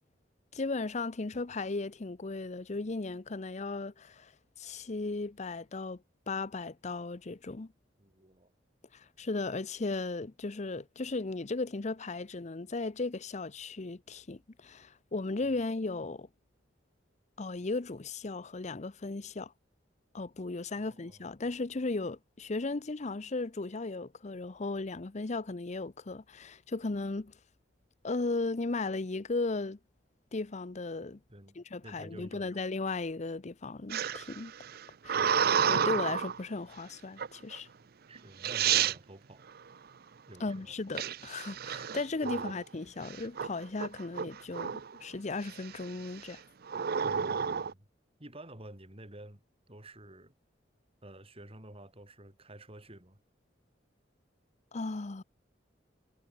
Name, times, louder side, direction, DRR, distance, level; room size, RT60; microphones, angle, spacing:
voice 1, 0.5-4.3 4.6-6.0 6.3-7.7 8.9-16.3 17.4-19.5 20.1-27.3 28.0-29.8 30.3-31.2 31.6-34.5 35.0-35.3 35.6-37.7 40.4-46.4 54.7-55.2, left 3 dB, 40° left, 0.7 m, -36 dB
voice 2, 8.0-8.5 9.0-9.1 15.4-15.6 20.7-21.3 31.3-31.6 31.8-32.7 35.1-35.7 38.1-39.5 40.3-40.8 42.2-42.5 47.0-47.9 48.2-50.3 51.0-53.2, right 1 dB, 30° right, 5.2 m, -51 dB
sound 1, 33.9-36.4 37.2-37.6 38.2-38.3 38.4-39.0 41.0-42.6 43.1-43.5 43.8-45.0 45.5-45.9 46.7-47.7, right 7 dB, 55° right, 0.6 m, -30 dB
head